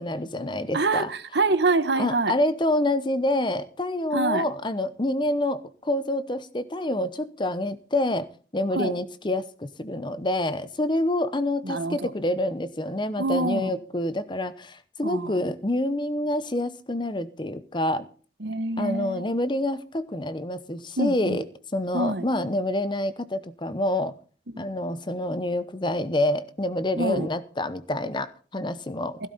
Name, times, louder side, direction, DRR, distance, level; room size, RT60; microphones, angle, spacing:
voice 1, 0.0-1.1 1.9-8.3 8.5-18.1 18.8-21.4 21.7-24.1 24.6-29.3, left 1 dB, 25° left, 13 dB, 0.9 m, -27 dB
voice 2, 0.7-2.3 4.1-4.4 8.8-8.9 11.6-12.1 13.2-13.8 15.0-15.4 18.4-19.3 21.0-21.4 21.9-22.2 24.5-24.6 27.0-27.3 29.2-29.3, right 2 dB, 65° right, 12 dB, 1.2 m, -26 dB
16.5 x 11.5 x 4.2 m, 0.39 s
head